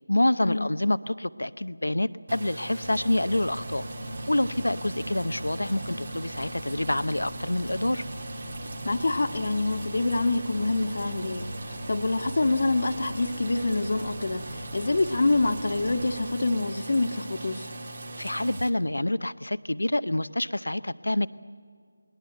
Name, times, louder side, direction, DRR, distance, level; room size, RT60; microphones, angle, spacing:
voice 1, 0.1-3.8 4.3-8.0 18.2-21.3, left 1 dB, 85° left, 15 dB, 0.7 m, -27 dB
sound 1, 2.3-18.7, right 2 dB, 45° right, 1.6 m, -40 dB
sound 2, 2.8-16.2, right 1 dB, 70° right, 6.8 m, -41 dB
voice 2, 8.8-11.5 11.9-17.7, left 2 dB, 50° left, 9 dB, 1.3 m, -26 dB
21.5 x 20.0 x 7.9 m, 2.1 s
figure-of-eight pair, 165°, 0 cm